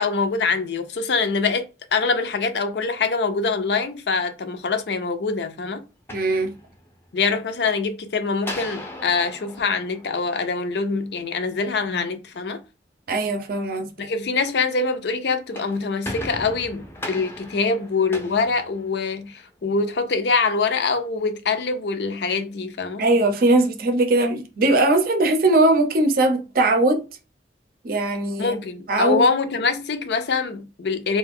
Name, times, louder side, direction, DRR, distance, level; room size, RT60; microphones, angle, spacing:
voice 1, 0.0-5.8 7.1-12.6 14.0-23.0 28.4-31.2, left 4 dB, 65° left, 0.5 m, -24 dB
sound 1, 5.9-7.1 8.4-10.9 15.3-19.4, left 1 dB, 15° left, 0.5 m, -38 dB
voice 2, 6.1-6.5 13.1-13.9 23.0-27.0 27.8-28.5 28.9-29.2, right 2 dB, 55° right, 0.5 m, -20 dB
2.4 x 2.2 x 3.5 m
head